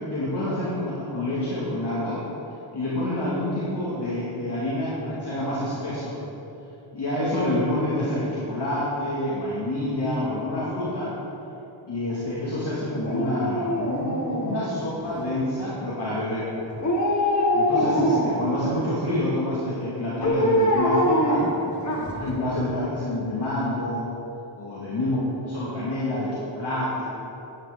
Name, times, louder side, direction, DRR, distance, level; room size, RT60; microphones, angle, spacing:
voice 1, 0.1-2.2 2.7-6.1 6.9-11.1 11.9-16.4 17.5-21.4 22.1-24.1 24.5-27.0, left 1 dB, 55° left, -9 dB, 2.2 m, -27 dB
Dog, 13.0-15.1 16.8-18.5 20.2-22.3 22.7-22.8, equal, 35° left, 1.7 m, -23 dB
10.0 x 9.9 x 3.8 m, 2.9 s
wide cardioid pair, 120°, 47 cm